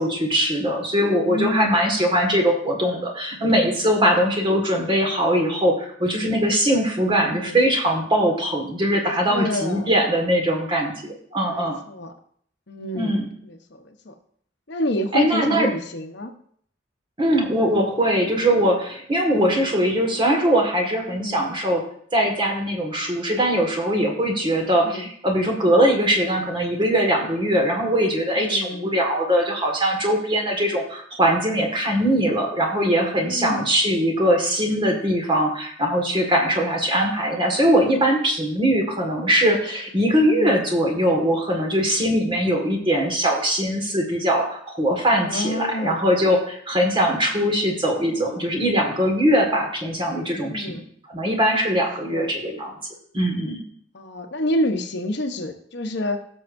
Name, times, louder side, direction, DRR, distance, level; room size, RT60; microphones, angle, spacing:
voice 1, 0.0-11.8 12.9-13.3 15.1-15.7 17.2-21.8 22.1-50.8 51.1-52.7 53.1-53.6, equal, 25° right, 2 dB, 1.7 m, -21 dB
voice 2, 1.2-1.9 7.3-7.6 9.3-9.9 11.5-12.1 12.7-13.2 14.1-14.2 14.7-16.3 21.1-21.4 24.8-25.1 28.4-28.9 33.2-33.7 40.3-40.6 45.2-46.0 50.4-50.8 52.0-52.3 53.9-56.2, left 1 dB, 60° left, 6 dB, 0.9 m, -28 dB
17.0 x 6.5 x 2.6 m, 0.62 s
head